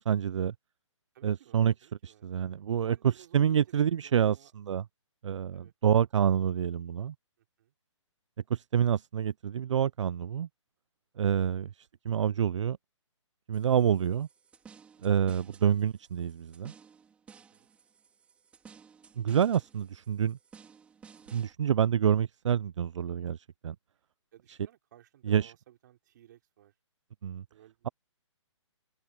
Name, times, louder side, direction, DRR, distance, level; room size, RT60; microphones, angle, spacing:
voice 1, 0.1-0.5 1.2-1.7 2.0-4.8 5.2-7.1 8.5-10.5 11.2-11.7 12.1-12.8 13.5-14.3 15.0-16.7 19.2-20.4 21.3-23.4 23.6-23.8 25.3-25.5 27.2-27.4, right 9 dB, 70° right, 0.4 m, -27 dB
voice 2, 1.1-2.3 2.8-4.5 5.5-5.7 7.4-7.7 11.4-11.8 15.4-15.5 17.3-17.7 24.3-26.7 27.5-27.9, right 12 dB, 35° right, 4.0 m, -58 dB
sound 1, 13.5-21.5, right 6 dB, 5° right, 3.4 m, -56 dB
hypercardioid pair, 165°, 16 cm